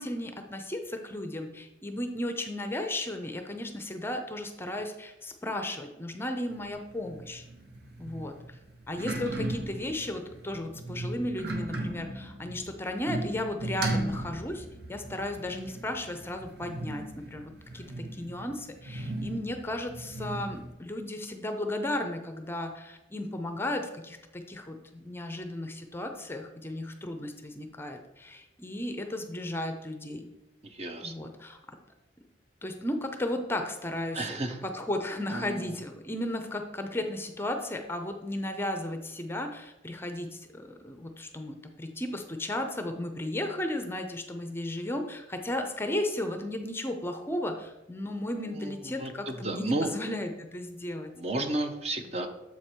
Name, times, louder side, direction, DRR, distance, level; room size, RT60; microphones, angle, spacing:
voice 1, 0.0-7.4 8.0-8.3 8.9-30.3 31.0-31.6 32.6-34.4 34.6-51.1, left 1 dB, 15° left, 5 dB, 0.5 m, -35 dB
sound 1, 6.5-20.7, right 1 dB, 65° right, 1.1 m, -37 dB
voice 2, 30.6-31.1 34.1-34.6 35.3-35.8 48.4-49.9 51.2-52.3, right 2 dB, 35° right, 6 dB, 0.7 m, -33 dB
7.2 x 4.6 x 4.4 m, 0.97 s
head